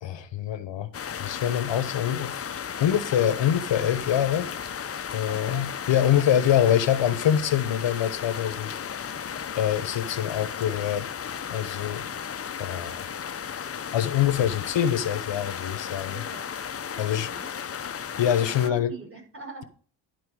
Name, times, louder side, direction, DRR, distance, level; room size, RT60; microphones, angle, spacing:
voice 1, 0.0-4.5 5.1-9.2 9.6-11.1 11.5-12.0 12.6-13.1 13.6-16.2 17.0-17.3 17.9-18.9, left 10 dB, 65° left, 0.9 m, -25 dB
sound 1, 0.9-18.7, left 7 dB, 30° left, 0.6 m, -35 dB
voice 2, 5.3-5.8 6.2-6.3 16.1-16.5 16.9-17.5 18.6-19.7, right 3 dB, 25° right, 5.3 m, -43 dB
11.5 x 4.6 x 4.7 m
cardioid pair, 80°, 48 cm